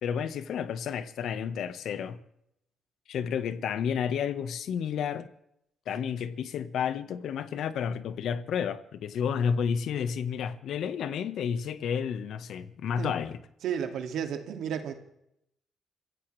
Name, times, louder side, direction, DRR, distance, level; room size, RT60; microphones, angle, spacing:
voice 1, 0.0-2.2 3.1-5.3 5.9-13.4, left 7 dB, 75° left, 1.4 m, -31 dB
voice 2, 13.6-14.9, right 8 dB, 75° right, 2.3 m, -32 dB
27.0 x 16.0 x 3.4 m
cardioid pair, 90°, 0 cm